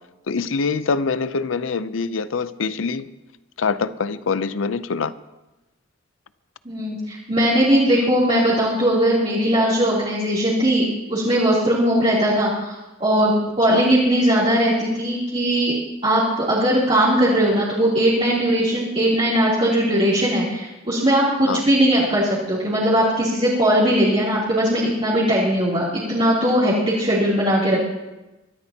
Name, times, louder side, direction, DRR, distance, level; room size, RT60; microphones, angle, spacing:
voice 1, 0.3-3.1 3.6-5.1 13.7-13.8 21.5-21.7, left 4 dB, 75° left, 14 dB, 0.6 m, -24 dB
voice 2, 6.6-10.8 11.1-12.7 13.0-13.3 13.6-15.7 16.0-27.9, equal, 30° right, -10 dB, 3.2 m, -19 dB
24.0 x 13.5 x 2.9 m, 1.0 s
head